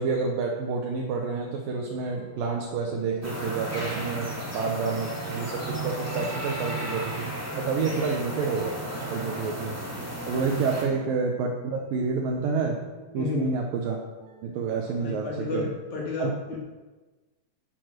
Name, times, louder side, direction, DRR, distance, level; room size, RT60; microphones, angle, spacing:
voice 1, 0.0-7.3 7.6-8.7 9.1-9.8 10.3-12.8 13.1-14.0 14.4-15.7 16.2-16.6, right 4 dB, 80° right, 0 dB, 3.0 m, -29 dB
sound 1, 1.7-13.7 14.2-15.6, right 1 dB, 40° right, 1.7 m, -49 dB
sound 2, 3.2-10.8, right 1 dB, 5° right, 2.7 m, -34 dB
voice 2, 7.9-8.2 10.9-11.0 13.2-13.6 15.0-15.6 15.9-16.6, left 4 dB, 55° left, -3 dB, 3.9 m, -32 dB
11.0 x 8.6 x 8.2 m, 1.2 s
omnidirectional pair, 4.0 m